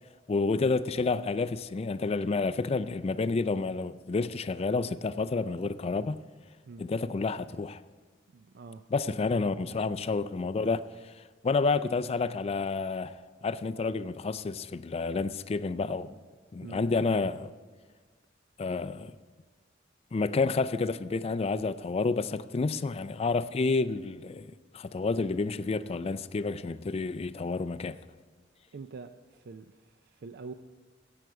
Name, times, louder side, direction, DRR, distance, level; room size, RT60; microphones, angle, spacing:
voice 1, 0.3-6.2 6.8-7.8 8.9-16.2 16.5-17.5 18.6-19.1 20.1-28.0, left 4 dB, 30° left, 0.4 m, -30 dB
voice 2, 8.3-8.8 9.6-10.1 16.6-16.9 28.7-30.5, right 4 dB, 55° right, 0.4 m, -46 dB
17.0 x 7.9 x 4.7 m
head